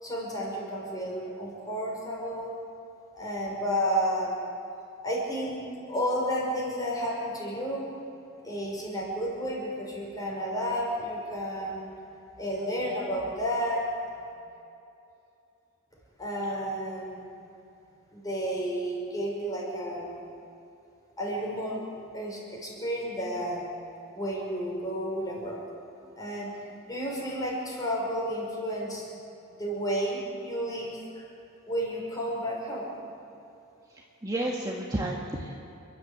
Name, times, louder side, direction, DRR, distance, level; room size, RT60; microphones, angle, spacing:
voice 1, 0.0-2.5 3.1-4.3 5.0-7.9 8.4-11.9 12.4-13.9 16.2-17.3 18.1-20.2 21.2-21.9 22.1-23.7 24.1-25.6 26.2-26.6 26.9-29.1 29.6-31.2 31.7-32.9, equal, 20° left, -3 dB, 5.6 m, -31 dB
voice 2, 33.9-35.6, right 1 dB, 20° right, -2 dB, 1.6 m, -32 dB
28.5 x 12.0 x 8.0 m, 2.7 s
head